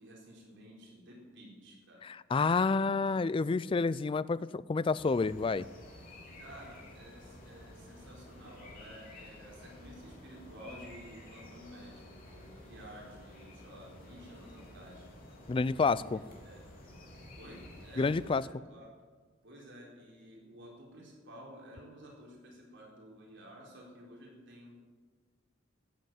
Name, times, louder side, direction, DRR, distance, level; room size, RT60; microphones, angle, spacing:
voice 1, 0.0-2.1 2.7-3.0 6.4-15.1 15.6-16.6 17.3-18.9 19.4-24.8, equal, 60° right, -3 dB, 4.0 m, -52 dB
voice 2, 2.0-5.7 15.5-16.2 18.0-18.4, left 4 dB, 25° left, 18 dB, 0.3 m, -29 dB
sound 1, 5.0-18.3, left 1 dB, 45° left, 3.2 m, -52 dB
13.5 x 7.8 x 9.0 m, 1.4 s
head